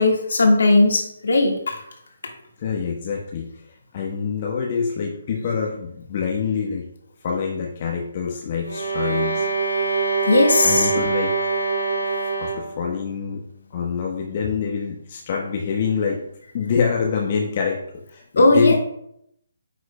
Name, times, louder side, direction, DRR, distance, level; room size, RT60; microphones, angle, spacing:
voice 1, 0.0-1.8 10.3-10.9 18.3-18.7, left 2 dB, 60° left, 2 dB, 1.6 m, -17 dB
voice 2, 2.6-6.9 7.2-9.5 10.6-11.3 12.4-13.4 13.7-16.2 16.5-18.7, left 6 dB, 40° left, 0 dB, 0.9 m, -25 dB
sound 1, 8.6-12.8, right 4 dB, 90° left, 1.5 m, -24 dB
9.5 x 6.1 x 2.2 m, 0.75 s
figure-of-eight pair, 140°, 0 cm